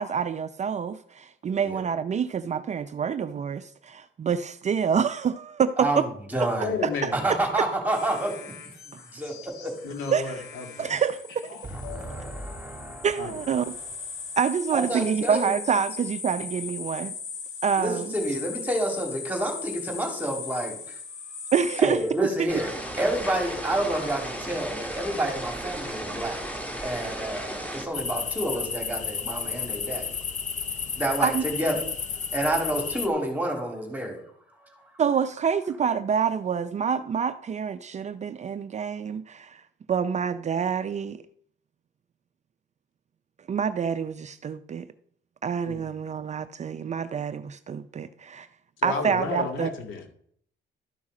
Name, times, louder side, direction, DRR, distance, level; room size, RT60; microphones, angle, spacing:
voice 1, 0.0-6.0 6.4-6.5 7.0-7.1 10.1-10.3 10.8-11.6 13.0-13.7 14.4-17.1 17.6-18.1 21.5-22.5 31.2-31.4 35.0-39.6 39.9-41.2 43.5-44.9 45.4-48.5 48.8-49.7, right 7 dB, 35° right, 12 dB, 0.5 m, -27 dB
voice 2, 5.8-6.7 7.1-8.3 8.8-9.7 11.7-13.1 14.7-15.5 17.8-21.0 21.8-22.7 23.0-26.4 26.8-30.2 31.0-31.9 32.3-34.2 34.6-34.8, right 1 dB, 10° right, 2 dB, 2.7 m, -29 dB
voice 3, 6.6-7.2 9.8-11.0 13.2-13.4 45.7-45.9 48.8-50.0, left 4 dB, 80° left, 3 dB, 2.2 m, -32 dB
sound 1, 7.9-22.5 23.1-24.2, left 5 dB, 60° left, 4.0 m, -39 dB
sound 2, 22.5-27.9, equal, 5° left, 2.1 m, -35 dB
sound 3, 27.9-33.1, left 6 dB, 40° left, 0.8 m, -32 dB
12.5 x 5.5 x 4.9 m, 0.62 s
cardioid pair, 125°, 20 cm